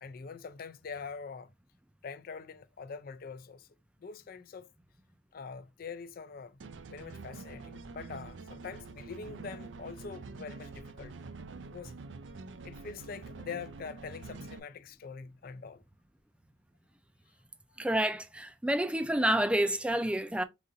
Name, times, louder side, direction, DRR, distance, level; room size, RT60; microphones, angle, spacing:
voice 1, 0.0-1.5 2.0-3.7 4.0-4.7 5.3-6.6 6.9-11.1 11.6-11.9 12.6-15.8, left 5 dB, 55° left, 0.4 m, -44 dB
sound 1, 6.6-14.6, right 3 dB, 85° right, 0.5 m, -46 dB
voice 2, 17.8-20.4, right 1 dB, 5° right, 0.4 m, -28 dB
4.0 x 2.5 x 3.9 m
head